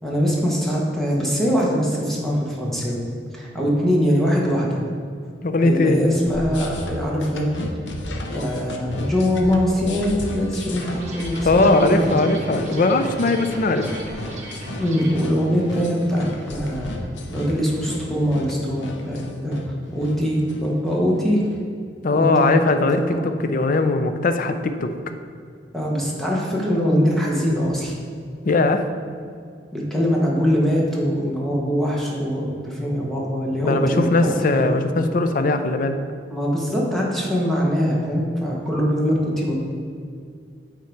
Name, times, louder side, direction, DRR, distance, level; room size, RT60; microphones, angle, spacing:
voice 1, 0.0-4.8 5.6-7.4 8.3-10.9 11.1-12.3 14.8-16.9 17.3-19.6 19.9-21.4 22.1-22.5 22.8-23.2 25.7-27.9 29.7-34.8 36.3-39.6, equal, ahead, -3 dB, 1.1 m, -22 dB
voice 2, 5.4-6.0 11.4-13.9 22.0-24.9 28.4-28.8 33.6-36.0, left 2 dB, 50° left, 8 dB, 0.5 m, -20 dB
sound 1, 6.2-21.5, left 1 dB, 90° left, 0.7 m, -33 dB
sound 2, 10.8-15.2, right 2 dB, 40° right, 1.2 m, -38 dB
8.4 x 3.8 x 4.5 m, 2.3 s
head